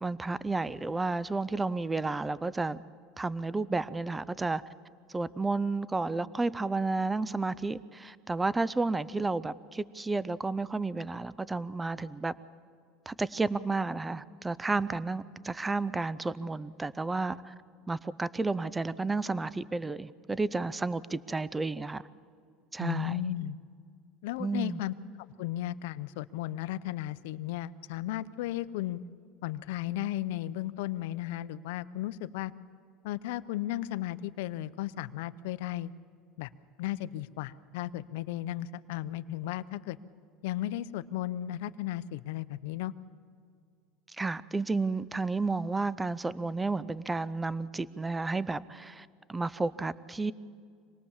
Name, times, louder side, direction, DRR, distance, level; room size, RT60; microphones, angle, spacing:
voice 1, 0.0-2.8 3.2-4.6 5.1-12.3 13.1-17.5 17.9-22.0 22.7-23.2 24.4-24.8 44.2-50.3, right 3 dB, 10° right, 19 dB, 0.5 m, -32 dB
voice 2, 22.8-23.6 24.2-24.9 25.4-29.0 29.4-32.5 33.0-35.9 36.4-36.5 36.8-40.0 40.4-42.9, left 14 dB, 80° left, 14 dB, 0.7 m, -35 dB
26.0 x 19.5 x 7.3 m, 2.2 s
supercardioid pair, 135°, 0 cm